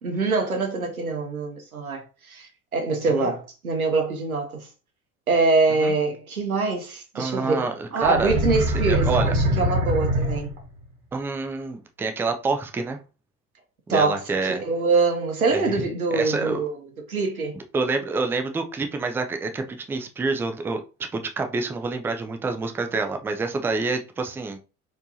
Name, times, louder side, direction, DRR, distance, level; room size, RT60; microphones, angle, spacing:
voice 1, 0.0-4.7 5.3-10.5 13.9-16.7 17.1-17.6, right 3 dB, 85° right, 0.8 m, -24 dB
voice 2, 7.1-8.3 8.8-9.3 11.1-13.0 13.9-14.6 15.5-15.9 16.1-16.6 17.6-24.6, right 3 dB, 5° right, 0.3 m, -27 dB
sound 1, 8.0-10.8, right 1 dB, 55° right, 1.2 m, -23 dB
4.3 x 3.0 x 2.7 m
figure-of-eight pair, 65°, 42 cm